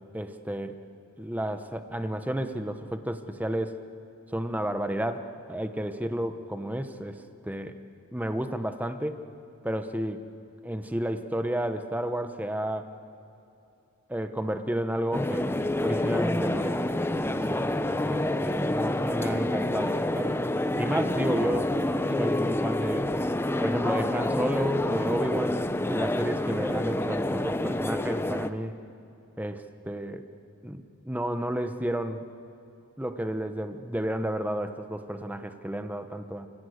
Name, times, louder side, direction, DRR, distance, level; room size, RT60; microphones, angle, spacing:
voice 1, 0.1-0.8 1.2-3.8 4.3-7.8 8.1-9.2 9.6-10.2 10.6-12.9 14.1-16.9 17.3-17.7 18.0-20.4 20.8-21.8 22.1-23.1 23.6-25.6 25.9-28.8 29.4-30.2 30.6-30.8 31.1-32.2 33.0-36.5, right 1 dB, 5° right, 8 dB, 0.9 m, -31 dB
sound 1, 15.1-28.5, left 1 dB, 10° left, 0.6 m, -28 dB
29.5 x 16.5 x 8.0 m, 2.7 s
head